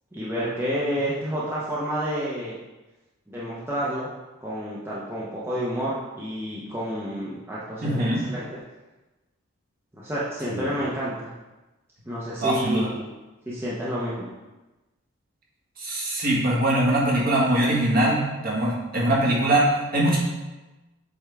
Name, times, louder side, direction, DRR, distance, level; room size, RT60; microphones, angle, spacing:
voice 1, 0.1-2.6 3.3-4.1 4.4-8.6 9.9-11.3 12.1-13.1 13.5-14.3, equal, 10° right, -8 dB, 0.8 m, -29 dB
voice 2, 7.8-8.2 10.5-10.6 12.4-12.9 15.8-20.2, right 1 dB, 45° right, -4 dB, 1.5 m, -22 dB
8.0 x 3.5 x 3.4 m, 1.1 s
head